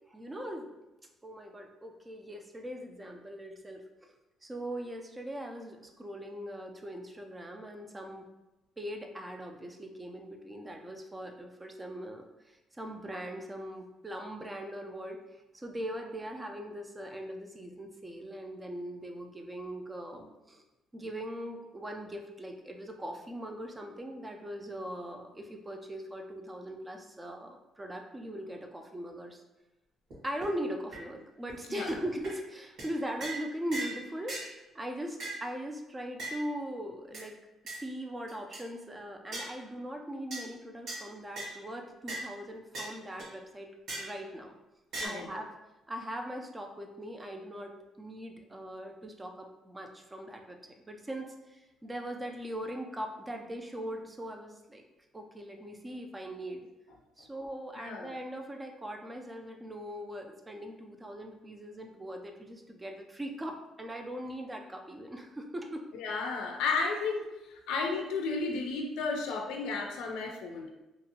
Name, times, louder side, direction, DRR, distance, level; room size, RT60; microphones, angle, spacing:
voice 1, 0.1-0.7 1.2-4.1 4.4-8.3 8.8-15.2 15.5-20.6 20.9-29.4 30.2-34.4 34.7-37.4 37.8-43.7 44.0-44.5 45.0-45.5 45.9-54.8 55.1-56.7 57.2-65.8, equal, 20° right, 3 dB, 0.4 m, -40 dB
sound 1, 30.1-30.2 30.4-30.5 30.9-31.0 31.5-31.6 31.9-32.0 32.2-32.4 32.8-32.9 33.2-33.4 33.7-34.0 34.3-34.5 35.2-35.4 36.2-36.4 37.1-37.2 37.7-37.8 38.3-38.6 39.3-39.5 40.3-40.5 40.9-41.0 41.4-41.6 42.1-42.2 42.7-42.9 43.2-43.3 43.9-44.1 44.9-45.1, right 2 dB, 70° right, 1.3 m, -38 dB
voice 2, 57.8-58.1 65.9-67.2 67.5-70.7, left 4 dB, 85° left, 2 dB, 0.4 m, -33 dB
2.8 x 2.6 x 2.7 m, 1.0 s
cardioid pair, 95°, 0 cm